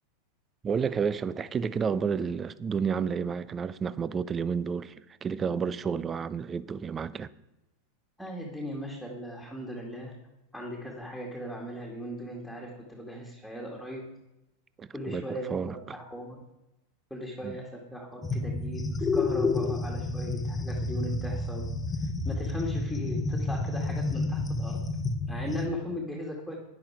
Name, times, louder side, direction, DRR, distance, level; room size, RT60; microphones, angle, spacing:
voice 1, 0.6-4.9 5.2-7.3 14.8-15.8 17.4-17.6, right 6 dB, 25° right, 0.5 m, -30 dB
voice 2, 8.2-10.1 10.5-14.1 14.9-16.4 17.1-18.9 19.1-21.7 22.2-24.8 25.3-26.6, equal, 5° right, 2.2 m, -38 dB
sound 1, 18.2-25.7, left 3 dB, 15° left, 1.1 m, -30 dB
10.5 x 10.0 x 4.8 m
hypercardioid pair, 90°, 0 cm